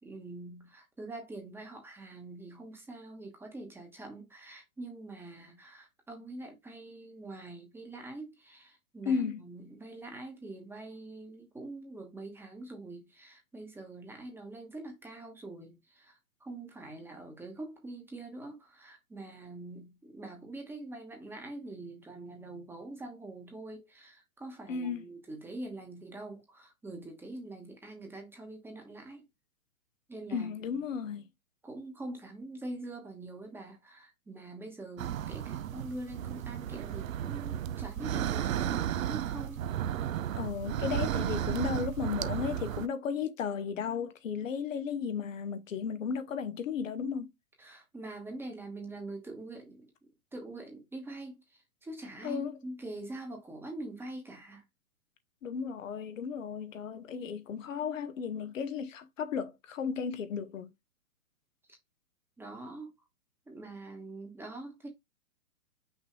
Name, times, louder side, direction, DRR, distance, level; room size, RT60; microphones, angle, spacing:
voice 1, 0.0-29.2 30.1-30.5 31.6-39.6 47.6-49.9 50.3-54.6 62.4-62.9 63.5-64.9, right 2 dB, 5° right, 1.1 m, -44 dB
voice 2, 9.0-9.4 24.7-25.1 30.3-31.2 40.3-47.3 52.2-52.6 55.4-60.7, left 6 dB, 65° left, 0.9 m, -34 dB
sound 1, 35.0-42.9, right 10 dB, 70° right, 0.6 m, -34 dB
5.9 x 2.6 x 3.0 m
hypercardioid pair, 130°, 42 cm